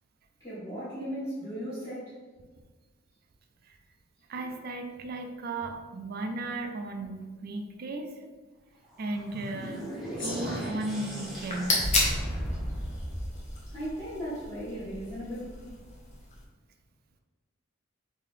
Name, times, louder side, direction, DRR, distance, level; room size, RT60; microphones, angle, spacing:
voice 1, 0.4-2.1 13.7-15.6, equal, 15° left, -14 dB, 1.1 m, -36 dB
voice 2, 4.3-8.1 9.0-9.8 10.2-12.0, right 2 dB, 45° right, 5 dB, 0.4 m, -35 dB
sound 1, 8.9-14.3, equal, ahead, 0.8 m, -36 dB
Gong, 10.2-14.9, left 1 dB, 60° left, 1.0 m, -47 dB
sound 2, 11.2-16.4, left 2 dB, 35° left, 0.8 m, -33 dB
3.2 x 2.8 x 3.7 m, 1.3 s
head